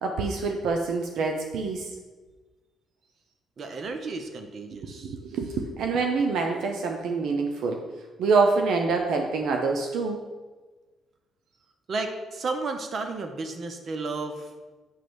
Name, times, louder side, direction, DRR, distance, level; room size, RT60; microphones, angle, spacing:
voice 1, 0.0-1.9 5.0-7.8 8.2-10.2, right 4 dB, 75° right, 3 dB, 0.7 m, -26 dB
voice 2, 3.6-5.1 11.9-14.5, right 3 dB, 50° right, 6 dB, 0.9 m, -33 dB
8.4 x 3.1 x 6.2 m, 1.3 s
cardioid pair, 90°, 0 cm